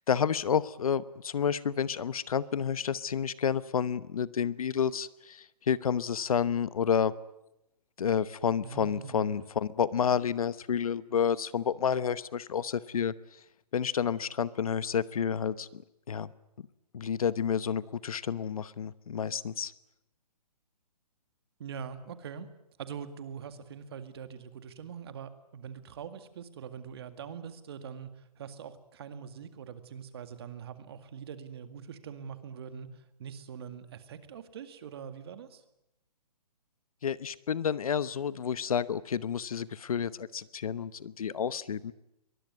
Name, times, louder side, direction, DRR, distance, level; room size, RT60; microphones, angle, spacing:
voice 1, 0.1-7.1 8.0-13.1 13.7-16.3 16.6-16.7 16.9-19.7 37.0-41.9, left 7 dB, 60° left, 17 dB, 1.0 m, -30 dB
voice 2, 8.6-9.3 21.6-22.5 22.8-35.6, right 7 dB, 40° right, 10 dB, 2.0 m, -43 dB
23.0 x 20.0 x 9.4 m, 0.87 s
hypercardioid pair, 165°, 21 cm